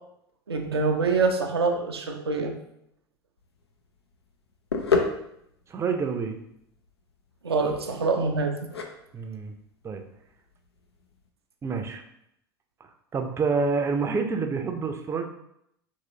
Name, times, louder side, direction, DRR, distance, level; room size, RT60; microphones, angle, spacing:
voice 1, 0.5-2.5 7.4-8.5, right 4 dB, 85° right, 3 dB, 0.4 m, -25 dB
sound 1, 3.4-11.3, left 4 dB, 85° left, 0.4 m, -33 dB
voice 2, 5.7-6.4 9.1-9.5 9.8-10.0 11.6-12.0 12.8-15.2, right 4 dB, 20° right, 5 dB, 0.5 m, -28 dB
3.7 x 3.0 x 2.8 m, 0.76 s
figure-of-eight pair, 75°, 13 cm